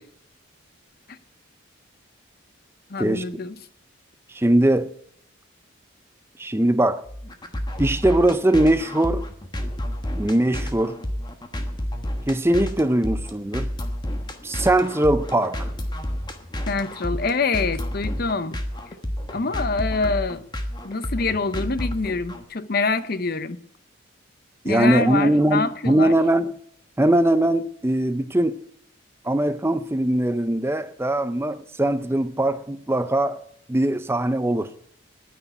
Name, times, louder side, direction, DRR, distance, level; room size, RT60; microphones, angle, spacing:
voice 1, 2.9-3.5 16.7-18.6 19.3-20.4 20.8-23.6 24.6-26.1, left 4 dB, 45° left, 0.7 m, -25 dB
voice 2, 4.3-4.9 6.4-7.1 7.8-9.3 10.2-11.0 12.3-13.7 14.4-15.7 24.6-26.5 27.0-28.6 29.2-34.7, right 1 dB, 10° right, 0.5 m, -21 dB
sound 1, 7.1-22.4, equal, 20° left, 1.3 m, -30 dB
9.9 x 9.4 x 9.8 m
head